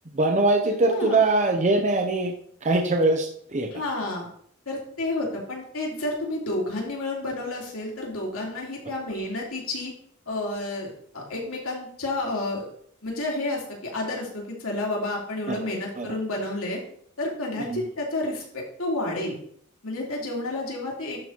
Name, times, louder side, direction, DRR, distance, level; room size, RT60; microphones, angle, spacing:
voice 1, 0.1-2.3 2.6-3.7 15.5-15.7 16.0-16.1 17.6-17.8, right 2 dB, 35° right, 3 dB, 0.8 m, -22 dB
voice 2, 0.8-1.2 3.7-4.3 4.7-9.9 10.3-12.6 13.0-16.8 17.2-19.4 19.8-21.2, left 2 dB, 85° left, -2 dB, 2.8 m, -30 dB
11.5 x 4.0 x 4.5 m, 0.63 s
head